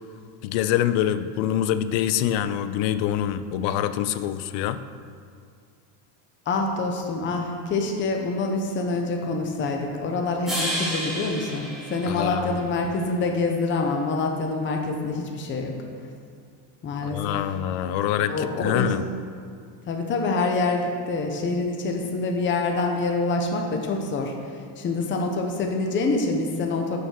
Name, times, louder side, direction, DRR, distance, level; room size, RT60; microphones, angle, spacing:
voice 1, 0.4-4.8 12.1-12.5 17.0-19.0, left 11 dB, 70° left, 12 dB, 0.6 m, -25 dB
voice 2, 6.5-15.7 16.8-17.4 18.3-18.9 19.9-24.3 24.8-27.0, left 3 dB, 25° left, 2 dB, 0.8 m, -26 dB
sound 1, 10.5-12.8, equal, ahead, 2.1 m, -31 dB
6.9 x 6.5 x 6.4 m, 2.2 s
cardioid pair, 160°, 48 cm